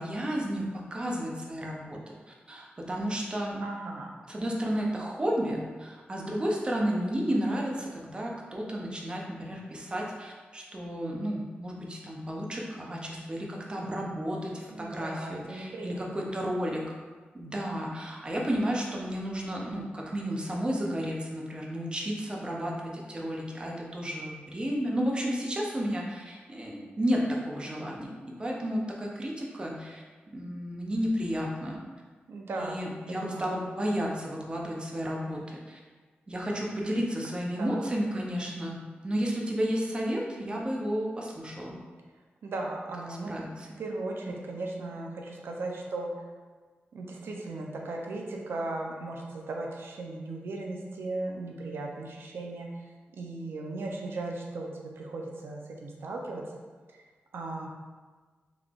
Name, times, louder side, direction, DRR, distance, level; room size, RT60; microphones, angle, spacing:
voice 1, 0.0-2.0 2.3-3.6 4.3-16.8 17.3-28.1 28.4-30.0 30.3-31.8 32.6-35.8 36.3-41.8 43.1-43.7 44.3-44.4, equal, 25° right, -2 dB, 0.5 m, -32 dB
voice 2, 3.6-4.1 14.7-16.3 32.3-32.8 33.1-33.6 37.6-37.9 42.4-43.4 43.8-46.1 46.9-52.7 53.1-56.4 57.3-57.7, right 2 dB, 80° right, 0 dB, 0.5 m, -37 dB
3.8 x 3.3 x 2.4 m, 1.4 s
wide cardioid pair, 115°, 4 cm